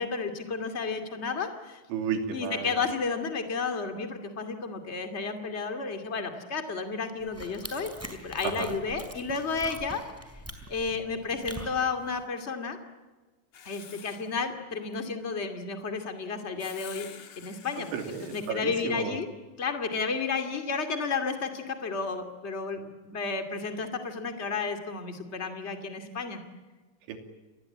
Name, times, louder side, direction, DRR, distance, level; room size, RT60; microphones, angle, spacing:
voice 1, 0.0-1.8 2.3-7.9 8.2-10.0 10.7-12.8 13.6-17.1 17.3-17.9 18.3-19.3 19.6-26.4, left 4 dB, 35° left, 6 dB, 1.1 m, -32 dB
voice 2, 1.9-2.8 8.4-8.8 17.8-19.2 27.1-27.2, right 6 dB, 70° right, 5 dB, 5.1 m, -33 dB
sound 1, 7.2-12.2, equal, 5° right, 3.4 m, -44 dB
Writing, 13.5-14.3 16.6-18.5, left 8 dB, 50° left, 3.4 m, -48 dB
29.0 x 22.0 x 8.6 m, 1.3 s
omnidirectional pair, 5.6 m